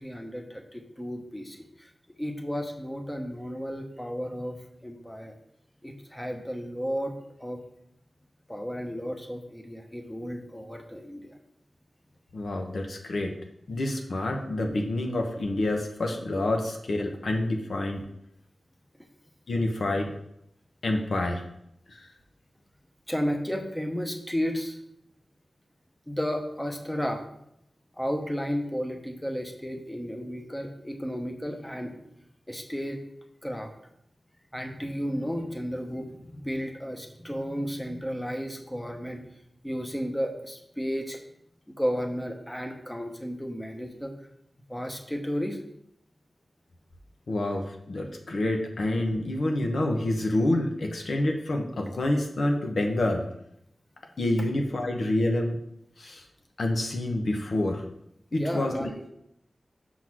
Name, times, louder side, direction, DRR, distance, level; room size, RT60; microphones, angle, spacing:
voice 1, 0.0-1.9 2.2-4.6 4.8-5.4 5.8-7.1 7.4-7.6 8.5-11.4 23.1-24.8 26.1-27.2 28.0-31.9 32.5-33.0 33.4-33.7 34.5-39.2 39.6-41.2 41.7-44.1 44.7-45.6 58.3-59.0, equal, 10° left, 4 dB, 0.9 m, -33 dB
voice 2, 12.3-13.3 13.7-18.0 19.5-20.2 20.8-21.4 21.9-22.1 47.3-53.2 54.2-55.6 56.0-56.2 56.6-57.8 58.3-58.9, left 1 dB, 75° left, 3 dB, 1.0 m, -27 dB
6.2 x 3.8 x 6.1 m, 0.75 s
wide cardioid pair, 85°, 0 cm